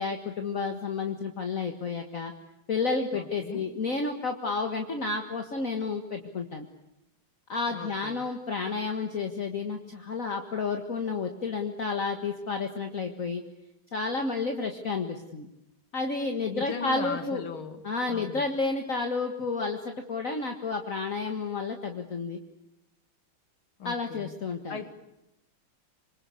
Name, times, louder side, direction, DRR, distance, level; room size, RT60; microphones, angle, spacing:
voice 1, 0.0-2.3 2.7-6.7 7.5-13.4 13.9-15.5 15.9-17.4 17.8-22.4 23.8-24.8, left 4 dB, 40° left, 4 dB, 2.0 m, -31 dB
voice 2, 3.1-3.7 7.7-8.2 16.5-17.8 18.1-18.4 23.8-24.3 24.7-24.9, left 6 dB, 80° left, 9 dB, 3.0 m, -38 dB
26.5 x 24.5 x 8.4 m, 0.86 s
omnidirectional pair, 2.3 m